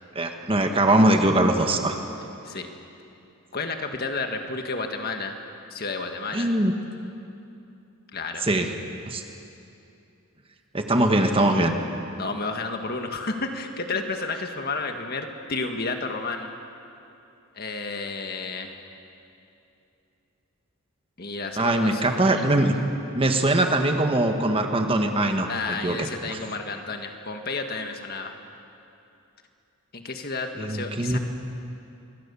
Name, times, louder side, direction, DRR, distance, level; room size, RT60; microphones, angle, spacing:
voice 1, 0.1-2.0 6.3-6.7 8.4-8.7 9.1-9.2 10.7-11.7 21.6-22.8 23.1-26.4 30.6-31.2, right 1 dB, 25° right, 4 dB, 1.5 m, -22 dB
voice 2, 3.5-5.4 5.7-6.5 8.1-8.5 12.2-16.5 17.6-18.7 21.2-22.6 25.5-28.4 29.9-31.2, left 3 dB, 45° left, 4 dB, 1.8 m, -31 dB
26.0 x 23.0 x 7.1 m, 2.7 s
head